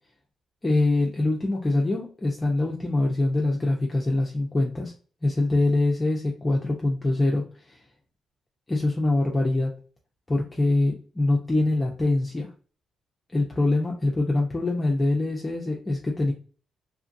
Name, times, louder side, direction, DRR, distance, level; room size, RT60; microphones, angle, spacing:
voice 1, 0.6-4.9 5.2-7.8 8.7-9.7 10.3-12.5 13.3-16.3, left 2 dB, 20° left, -2 dB, 0.6 m, -24 dB
3.0 x 2.4 x 2.5 m, 0.38 s
cardioid pair, 80°, 0 cm